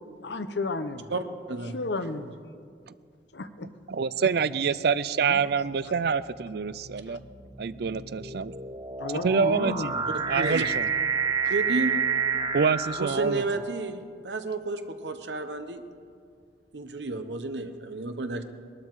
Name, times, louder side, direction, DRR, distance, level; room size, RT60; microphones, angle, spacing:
voice 1, 0.2-1.2 1.6-2.4 3.3-3.7 4.2-4.3 5.2-5.4 7.1-7.2 9.0-10.7 11.4-11.5, left 2 dB, 75° left, 10 dB, 0.9 m, -34 dB
voice 2, 1.1-1.8 10.3-10.6 11.5-12.0 13.0-15.8 16.7-18.4, right 3 dB, 80° right, 8 dB, 1.1 m, -31 dB
voice 3, 3.9-7.2 7.6-8.5 9.1-9.9 10.3-10.9 12.5-13.4, right 5 dB, 60° right, 16 dB, 0.4 m, -26 dB
sound 1, 4.4-4.8 5.6-13.8, right 6 dB, 25° right, 0.8 m, -30 dB
21.0 x 12.5 x 4.8 m, 2.2 s
head